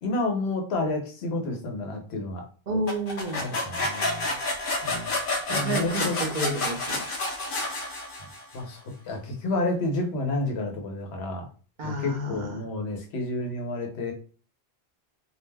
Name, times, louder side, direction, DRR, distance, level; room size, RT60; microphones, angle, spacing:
voice 1, 0.0-2.4 3.4-4.3 4.8-5.1 5.5-6.2 8.5-11.5 11.8-14.1, left 2 dB, 85° left, 3 dB, 1.0 m, -30 dB
voice 2, 2.7-3.4 5.5-7.0 7.4-7.5 11.8-12.6, right 1 dB, 50° right, 2 dB, 0.8 m, -30 dB
sound 1, 2.9-8.5, left 2 dB, 60° left, 0.8 m, -29 dB
2.4 x 2.1 x 3.2 m, 0.38 s
omnidirectional pair, 1.0 m